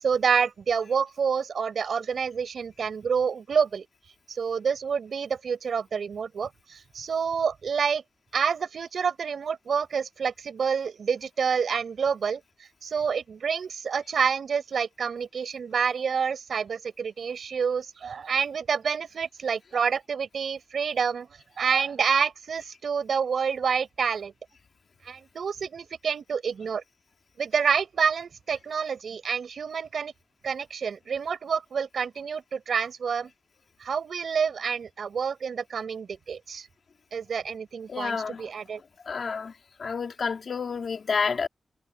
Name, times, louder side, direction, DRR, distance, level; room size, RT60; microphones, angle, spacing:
voice 1, 0.0-3.9 4.3-8.0 8.3-12.4 12.8-21.3 21.6-24.3 25.0-26.8 27.4-30.1 30.4-33.3 33.8-36.7 37.1-38.8, right 6 dB, 85° right, 6.2 m, -28 dB
voice 2, 37.9-38.4 39.1-39.5 39.8-41.5, left 5 dB, 60° left, 2.6 m, -29 dB
wide cardioid pair, 160°, 0 cm